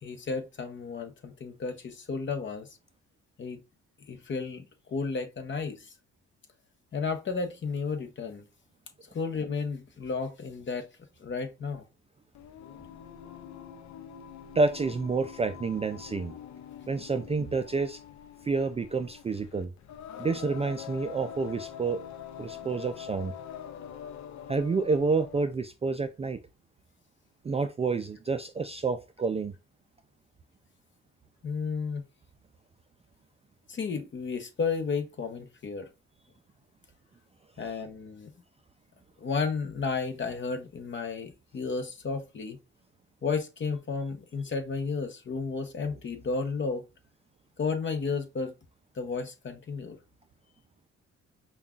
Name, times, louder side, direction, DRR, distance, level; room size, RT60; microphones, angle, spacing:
voice 1, 0.0-2.7 3.4-3.6 4.1-5.9 6.9-8.4 9.1-10.9 11.2-11.8 31.4-32.0 33.7-35.9 37.6-38.3 39.2-42.6 43.2-46.8 47.6-48.5 48.9-50.0, left 4 dB, 40° left, 0.8 m, -33 dB
Singing, 12.3-25.5, left 9 dB, 70° left, 0.6 m, -44 dB
voice 2, 14.6-16.3 16.9-18.0 18.4-19.7 20.2-22.0 22.4-23.3 24.5-26.4 27.4-29.5, right 4 dB, 20° right, 0.3 m, -29 dB
5.4 x 2.3 x 2.4 m
cardioid pair, 90°, 30 cm